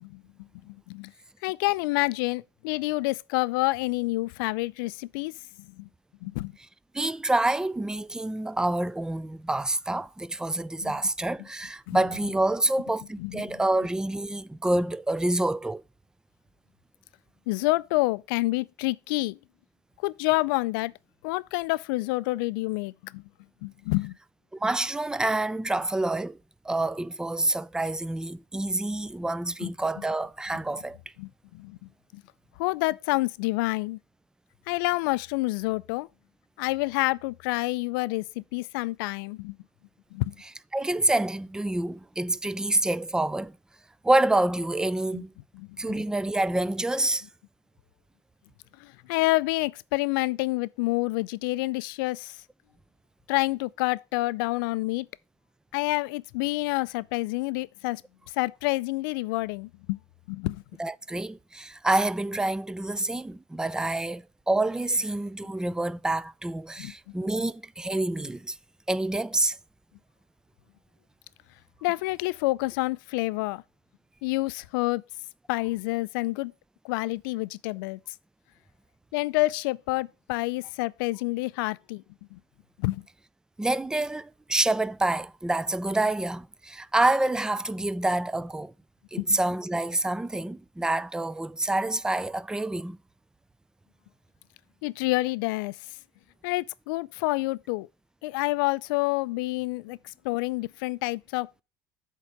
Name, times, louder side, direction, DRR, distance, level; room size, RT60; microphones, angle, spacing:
voice 1, 0.7-1.1 1.4-5.9 6.2-6.6 10.8-10.9 11.9-12.0 13.2-13.5 17.5-19.4 20.0-20.9 21.2-23.2 23.6-24.1 29.6-29.7 31.2-31.8 32.1-32.2 32.6-34.0 34.7-36.1 36.6-39.6 40.1-40.3 45.1-45.2 45.5-45.8 48.8-52.4 53.3-55.1 55.7-58.0 58.3-60.0 60.3-60.6 66.8-67.1 71.8-73.6 74.2-75.0 75.5-76.5 76.8-78.0 79.1-82.0 82.3-82.4 82.8-83.0 89.2-89.4 94.8-95.8 96.4-97.9 98.2-101.6, left 22 dB, 75° left, 0.4 m, -28 dB
voice 2, 6.9-15.8 24.5-26.4 26.6-31.0 40.7-43.6 44.0-45.3 45.8-47.3 60.8-68.6 68.9-69.6 83.6-88.7 89.1-93.0, right 2 dB, 5° right, 0.4 m, -27 dB
8.2 x 3.7 x 6.7 m
supercardioid pair, 95°, 12 cm